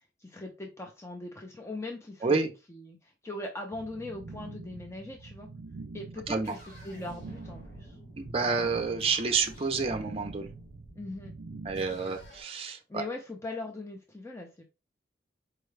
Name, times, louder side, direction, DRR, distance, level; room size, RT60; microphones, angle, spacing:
voice 1, 0.2-5.5 5.9-6.6 6.8-8.0 11.0-11.3 12.9-14.6, left 2 dB, 15° left, 0.5 m, -40 dB
voice 2, 2.2-2.5 6.3-6.5 8.2-10.5 11.6-13.0, right 4 dB, 35° right, 0.5 m, -29 dB
sound 1, 3.7-12.3, right 3 dB, 80° right, 0.5 m, -45 dB
sound 2, 6.1-12.4, equal, 65° left, 2.5 m, -52 dB
4.6 x 2.2 x 3.2 m
head